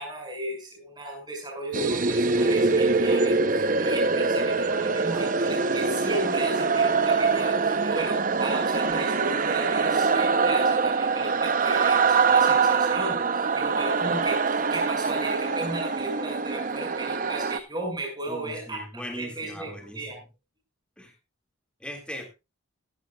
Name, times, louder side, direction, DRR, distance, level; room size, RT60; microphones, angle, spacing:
voice 1, 0.0-20.2, right 2 dB, 20° right, 1 dB, 6.0 m, -35 dB
sound 1, 1.7-17.6, right 4 dB, 40° right, 0.7 m, -24 dB
voice 2, 18.3-20.1 21.0-21.1 21.8-22.3, equal, 5° left, 3 dB, 2.1 m, -39 dB
15.0 x 13.5 x 2.3 m, 0.25 s
head